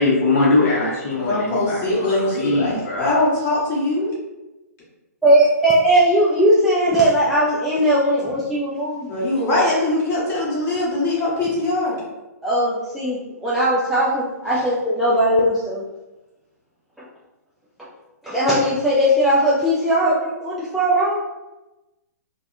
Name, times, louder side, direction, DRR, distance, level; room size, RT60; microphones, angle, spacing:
voice 1, 0.0-3.2 14.5-14.6, left 2 dB, 50° left, -4 dB, 0.7 m, -21 dB
voice 2, 1.2-4.1 9.1-11.9, left 2 dB, 25° left, -7 dB, 1.3 m, -22 dB
voice 3, 5.2-9.1 12.4-15.8 18.2-21.2, right 1 dB, ahead, -9 dB, 0.3 m, -18 dB
3.3 x 2.1 x 2.4 m, 1.0 s
figure-of-eight pair, 120°, 9 cm